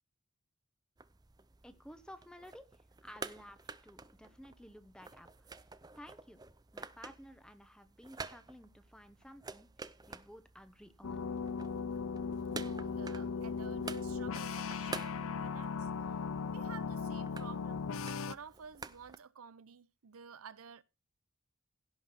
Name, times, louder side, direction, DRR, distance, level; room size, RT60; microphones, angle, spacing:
sound 1, 1.0-19.2, right 4 dB, 20° right, 0.5 m, -50 dB
voice 1, 1.6-5.5 5.9-6.4 6.7-9.7 10.1-11.3, equal, 5° left, 1.0 m, -54 dB
sound 2, 11.0-18.4, left 5 dB, 80° left, 0.5 m, -38 dB
voice 2, 12.6-15.9 16.4-17.9 18.2-20.8, right 6 dB, 85° right, 0.7 m, -52 dB
16.5 x 5.8 x 4.3 m
head